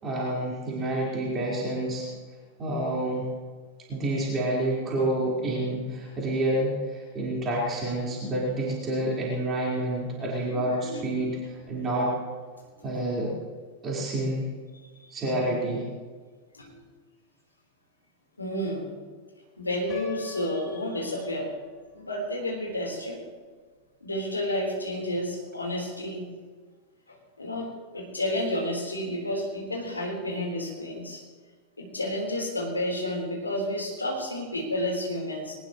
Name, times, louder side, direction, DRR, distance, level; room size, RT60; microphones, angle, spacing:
voice 1, 0.0-2.1 2.6-3.3 3.9-12.1 12.8-13.3 13.8-14.5 15.1-15.9, right 1 dB, 25° right, -5 dB, 4.8 m, -28 dB
voice 2, 10.5-11.1 15.0-15.1 16.5-16.8 18.4-18.9 19.6-21.5 21.9-23.2 24.0-26.3 27.1-31.2 31.8-35.5, left 1 dB, 80° left, 0 dB, 4.2 m, -31 dB
Piano, 19.9-21.9, left 5 dB, 30° left, 3.7 m, -39 dB
22.0 x 19.5 x 3.2 m, 1.5 s
figure-of-eight pair, 90°, 0 cm